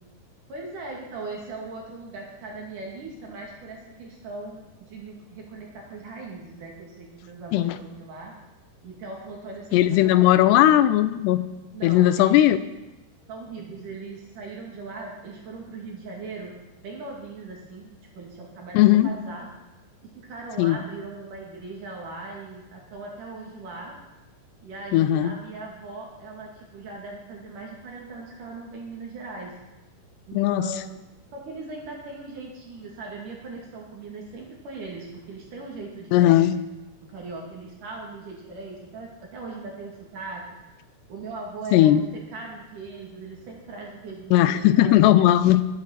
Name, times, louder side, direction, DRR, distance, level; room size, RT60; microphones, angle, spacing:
voice 1, 0.5-8.3 8.8-10.6 11.7-12.4 13.3-16.5 16.8-19.5 20.2-23.9 24.6-29.5 30.3-31.0 31.3-36.5 37.1-40.4 41.1-45.0, right 3 dB, 55° right, -2 dB, 3.7 m, -39 dB
voice 2, 9.7-11.5 11.8-12.6 18.7-19.1 20.6-20.8 24.9-25.4 30.3-30.7 36.1-36.6 41.7-42.0 44.3-45.7, left 13 dB, 85° left, 13 dB, 2.7 m, -18 dB
12.5 x 9.0 x 7.4 m, 1.0 s
omnidirectional pair, 4.9 m